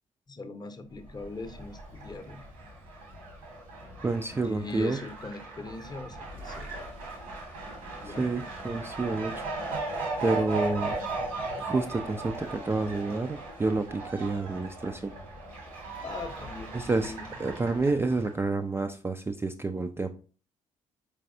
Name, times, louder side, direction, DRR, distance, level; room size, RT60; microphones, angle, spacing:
voice 1, 0.3-2.4 4.4-6.7 8.0-8.3 16.0-17.3, left 3 dB, 25° left, 8 dB, 0.7 m, -40 dB
Fowl, 1.1-18.4, right 2 dB, 80° right, 1.4 m, -38 dB
voice 2, 4.0-5.0 8.0-9.3 10.2-11.0 11.6-15.1 16.7-17.1 17.4-20.1, right 3 dB, 15° right, 6 dB, 0.3 m, -29 dB
4.6 x 3.4 x 2.6 m, 0.38 s
figure-of-eight pair, 45°, 17 cm